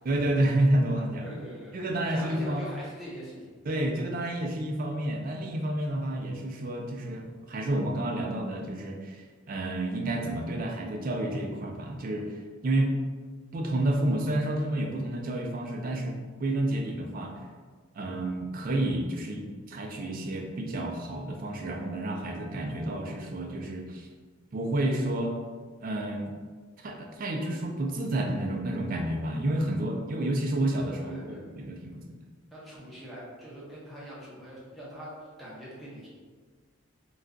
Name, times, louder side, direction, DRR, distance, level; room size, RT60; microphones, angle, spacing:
voice 1, 0.1-1.3 1.7-2.7 3.7-12.4 12.6-12.9 13.5-17.4 17.9-24.1 24.5-25.4 25.8-26.3 26.8-32.1, right 1 dB, 40° right, 2 dB, 0.3 m, -30 dB
voice 2, 1.2-3.5 31.0-31.6 32.5-36.1, equal, ahead, -8 dB, 0.7 m, -43 dB
2.3 x 2.2 x 3.7 m, 1.5 s
head